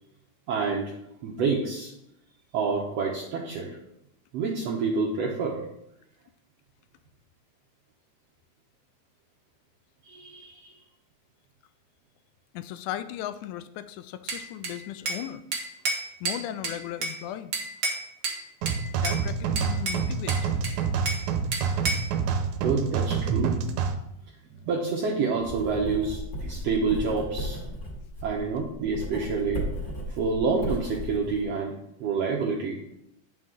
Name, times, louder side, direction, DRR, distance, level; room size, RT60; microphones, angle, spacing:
voice 1, 0.5-0.9 1.2-1.9 2.5-3.8 4.3-5.6 10.1-10.8 22.6-23.6 24.6-27.6 28.2-29.6 30.1-31.7 32.0-32.8, right 4 dB, 65° right, -2 dB, 1.8 m, -28 dB
voice 2, 12.5-15.4 16.2-17.5 19.0-20.7, left 11 dB, 90° left, 13 dB, 2.0 m, -36 dB
Bell / Glass, 14.3-15.3 15.5-17.2 17.5-18.4 18.7-19.2 19.6-21.3 21.5-22.1, right 3 dB, 50° right, 1.8 m, -31 dB
sound 1, 18.6-23.9, right 6 dB, 85° right, 2.1 m, -27 dB
Writing, 25.4-31.4, equal, 30° left, 2.3 m, -35 dB
9.5 x 5.7 x 3.8 m, 0.79 s
omnidirectional pair, 3.4 m